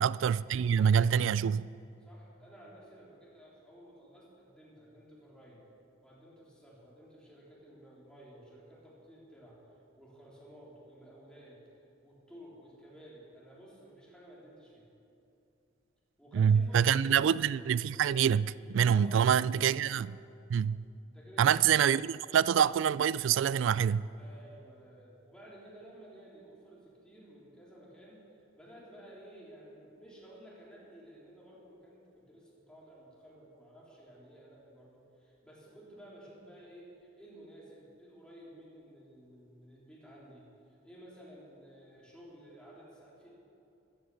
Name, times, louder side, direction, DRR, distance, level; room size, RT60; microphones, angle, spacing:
voice 1, 0.0-1.7 16.3-20.2 20.5-20.9 21.4-24.1, right 8 dB, 70° right, 0.3 m, -26 dB
voice 2, 2.0-5.6 6.0-9.6 10.0-11.6 12.0-14.9 16.2-17.3 18.9-19.7 21.1-21.6 24.1-40.4 40.8-43.3, equal, 5° left, 3.6 m, -54 dB
15.0 x 13.0 x 7.1 m
head